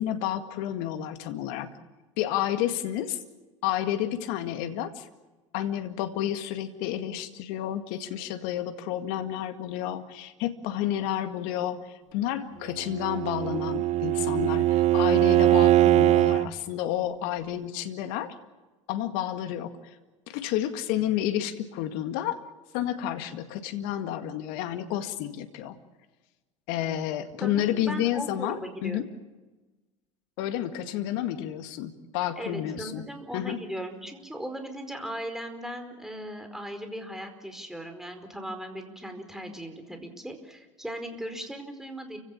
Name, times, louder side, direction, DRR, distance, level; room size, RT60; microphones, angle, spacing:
voice 1, 0.0-1.7 2.2-3.2 3.6-5.1 5.5-18.3 18.9-19.7 20.3-22.4 22.7-25.8 26.7-29.1 30.4-33.0 33.3-33.6, left 11 dB, 65° left, 8 dB, 2.0 m, -30 dB
Bowed string instrument, 12.8-16.5, right 14 dB, 45° right, 0.7 m, -21 dB
voice 2, 27.4-29.1 32.4-42.2, right 1 dB, 5° right, 5 dB, 4.8 m, -38 dB
29.5 x 17.0 x 7.4 m, 1.2 s
hypercardioid pair, 80°, 16 cm